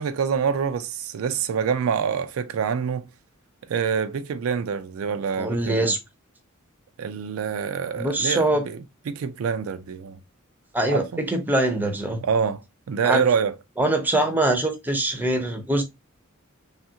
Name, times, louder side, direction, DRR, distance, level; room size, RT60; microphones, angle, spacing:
voice 1, 0.0-3.1 3.7-5.9 7.0-8.8 9.1-10.2 10.9-11.2 12.2-12.6 12.9-13.5, right 6 dB, 75° right, 0.4 m, -26 dB
voice 2, 5.4-6.0 8.0-8.6 10.7-12.2 13.0-13.2 13.8-15.8, right 1 dB, 10° right, 0.6 m, -23 dB
3.2 x 2.4 x 2.7 m
head